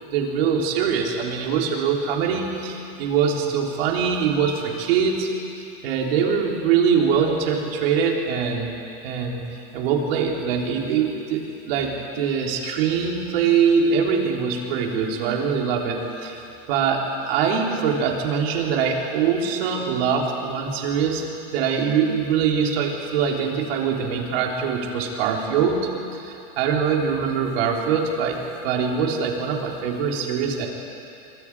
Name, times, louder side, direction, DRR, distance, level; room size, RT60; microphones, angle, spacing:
voice 1, 0.1-5.3 5.8-8.7 9.0-9.4 9.7-16.4 16.7-21.2 21.5-25.8 26.1-30.7, right 6 dB, 75° right, 0 dB, 4.0 m, -23 dB
26.0 x 24.5 x 4.9 m, 2.7 s
supercardioid pair, 150°, 30 cm